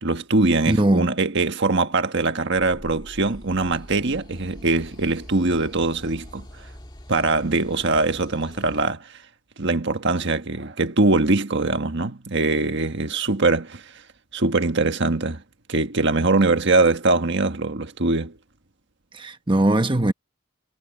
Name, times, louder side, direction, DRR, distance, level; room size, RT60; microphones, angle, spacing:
voice 1, 0.0-6.4 7.1-9.2 9.6-13.8 14.3-15.4 15.7-18.4, right 3 dB, 55° right, 1.5 m, -22 dB
voice 2, 0.7-1.1 19.1-20.1, right 1 dB, 25° right, 1.1 m, -20 dB
sound 1, 2.5-8.9, equal, 20° left, 2.1 m, -43 dB
head